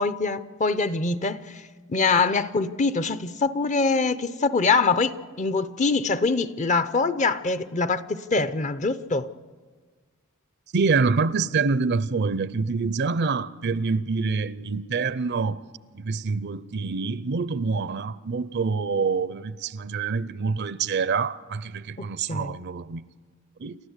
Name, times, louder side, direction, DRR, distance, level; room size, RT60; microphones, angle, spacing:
voice 1, 0.0-1.6 1.9-9.3 22.0-22.6, left 4 dB, 35° left, 0.6 m, -24 dB
voice 2, 10.7-15.6 15.9-23.0 23.6-23.8, right 4 dB, 50° right, 0.5 m, -26 dB
28.5 x 13.0 x 8.1 m
head